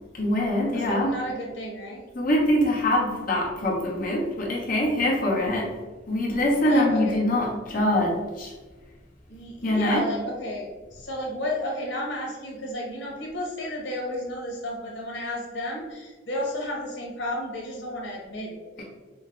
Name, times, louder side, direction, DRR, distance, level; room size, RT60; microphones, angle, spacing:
voice 1, 0.1-1.1 2.1-5.7 6.1-8.5 9.6-10.0 18.8-18.9, left 1 dB, 50° left, -4 dB, 1.2 m, -24 dB
voice 2, 0.7-2.0 6.6-7.2 9.3-18.8, left 1 dB, 90° left, -1 dB, 1.2 m, -32 dB
5.3 x 2.2 x 3.7 m, 1.3 s
head